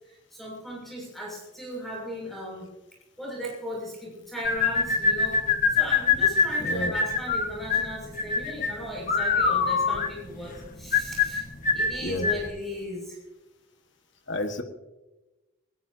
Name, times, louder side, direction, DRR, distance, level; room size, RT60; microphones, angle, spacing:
voice 1, 0.1-2.7 3.2-5.4 5.7-11.4 11.7-13.2, equal, ahead, -4 dB, 6.7 m, -37 dB
sound 1, 4.4-12.5, left 5 dB, 40° left, 1.5 m, -24 dB
voice 2, 6.6-6.9 12.0-12.3 14.3-14.6, left 1 dB, 55° left, 5 dB, 1.7 m, -30 dB
20.5 x 20.0 x 2.9 m, 1.1 s
head